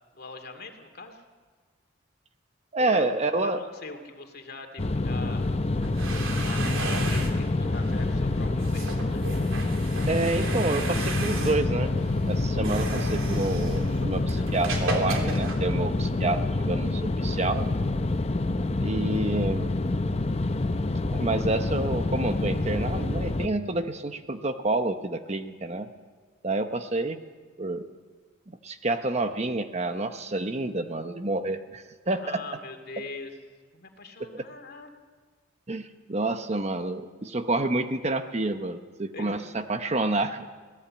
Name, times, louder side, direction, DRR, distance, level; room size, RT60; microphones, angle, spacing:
voice 1, 0.1-1.2 2.8-5.5 6.2-6.6 7.1-9.2 32.1-33.3 33.7-34.9 39.1-39.4, left 3 dB, 50° left, 5 dB, 2.5 m, -42 dB
voice 2, 2.7-3.6 10.1-17.7 18.8-19.7 21.1-25.9 26.4-27.2 27.6-27.9 28.5-32.4 34.2-34.4 35.7-40.5, right 2 dB, 35° right, 8 dB, 0.9 m, -29 dB
sound 1, 4.8-23.5, left 2 dB, 30° left, 0.7 m, -27 dB
sound 2, 5.7-16.3, right 3 dB, 85° right, 3.4 m, -36 dB
25.0 x 17.5 x 8.7 m, 1.5 s
head